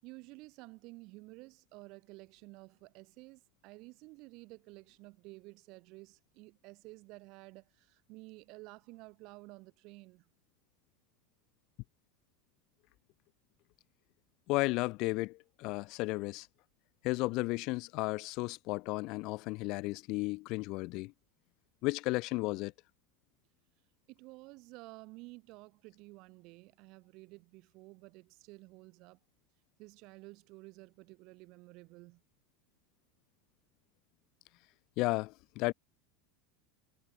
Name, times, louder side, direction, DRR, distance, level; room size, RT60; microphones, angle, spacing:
voice 1, 0.0-10.3 24.1-29.2 29.8-32.2, right 23 dB, 50° right, 5.1 m, -52 dB
voice 2, 14.5-16.5 17.0-21.1 21.8-22.7 35.0-35.7, left 23 dB, 50° left, 0.9 m, -34 dB
supercardioid pair, 150°, 0 cm